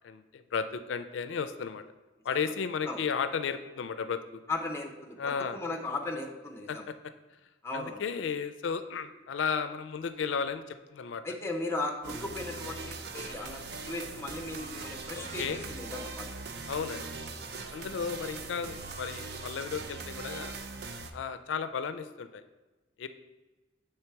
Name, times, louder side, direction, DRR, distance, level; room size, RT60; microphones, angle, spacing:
voice 1, 0.0-1.8 2.2-4.4 5.2-5.6 6.7-6.9 7.7-11.2 13.4-13.6 15.1-15.6 16.7-17.0 17.7-20.5 21.1-22.4 23.0-23.1, left 6 dB, 80° left, 11 dB, 0.4 m, -34 dB
voice 2, 4.5-6.8 7.6-8.0 11.2-16.3, left 2 dB, 15° left, 3 dB, 0.6 m, -37 dB
sound 1, 12.0-21.1, right 4 dB, 55° right, 0.5 m, -41 dB
6.9 x 3.3 x 4.5 m, 1.2 s
head